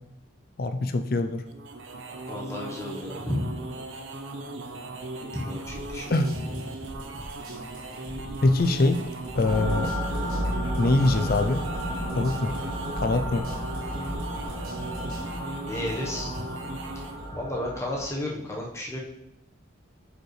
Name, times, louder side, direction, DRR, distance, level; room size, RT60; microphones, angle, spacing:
voice 1, 0.6-1.4 6.1-6.3 8.4-9.0 9.4-9.9 10.8-11.6 12.1-12.5 13.0-13.5, left 2 dB, 45° left, 7 dB, 0.4 m, -23 dB
sound 1, 1.5-17.3, right 2 dB, 70° right, 0.7 m, -38 dB
voice 2, 2.3-3.6 5.3-6.2 6.6-6.7 15.6-16.4 17.3-19.0, left 1 dB, 15° left, -3 dB, 1.1 m, -32 dB
sound 2, 5.6-15.2, equal, 45° right, 1.8 m, -44 dB
sound 3, 9.4-18.1, equal, 20° right, 2.3 m, -32 dB
8.6 x 5.1 x 3.3 m, 0.85 s
head